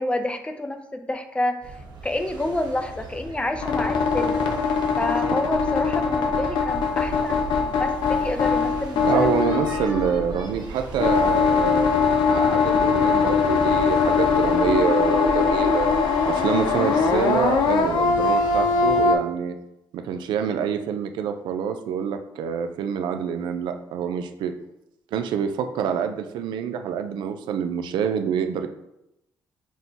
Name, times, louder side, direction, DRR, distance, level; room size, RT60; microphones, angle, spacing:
voice 1, 0.0-1.6 2.0-4.4 5.0-9.8, left 1 dB, 15° left, 7 dB, 0.5 m, -29 dB
sound 1, 1.6-19.0, right 4 dB, 65° right, 1.1 m, -38 dB
sound 2, 3.6-10.5 11.0-19.1, left 5 dB, 85° left, 0.5 m, -21 dB
voice 2, 9.0-11.9 12.3-15.9 16.3-19.6 19.9-24.5 25.1-28.7, right 7 dB, 85° right, 7 dB, 0.4 m, -26 dB
6.1 x 2.1 x 4.0 m, 0.86 s
cardioid pair, 85°, 8 cm